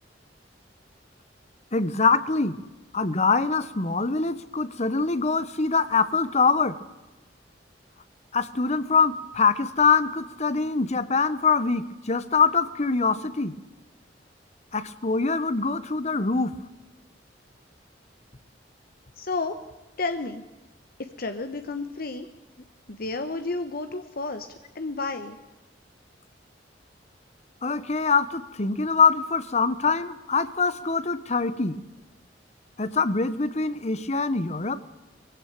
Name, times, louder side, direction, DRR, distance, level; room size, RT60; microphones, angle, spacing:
voice 1, 1.7-2.6 2.9-6.8 8.3-13.5 14.7-16.5 27.6-31.8 32.8-34.8, left 4 dB, 40° left, 14 dB, 1.1 m, -24 dB
voice 2, 19.2-19.6 20.0-20.4 21.0-22.3 22.9-24.5 24.7-25.4, left 3 dB, 55° left, 8 dB, 1.1 m, -31 dB
22.0 x 16.0 x 8.9 m, 1.1 s
head